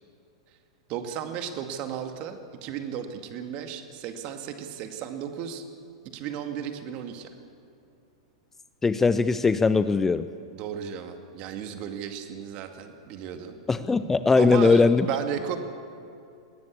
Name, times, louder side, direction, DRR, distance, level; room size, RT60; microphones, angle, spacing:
voice 1, 0.9-5.6 6.1-7.3 10.5-13.6 14.4-15.6, right 8 dB, 40° right, 6 dB, 2.1 m, -34 dB
voice 2, 8.8-10.3 13.7-15.1, left 4 dB, 10° left, 13 dB, 0.6 m, -20 dB
21.5 x 17.0 x 8.4 m, 2.6 s
figure-of-eight pair, 100°, 3 cm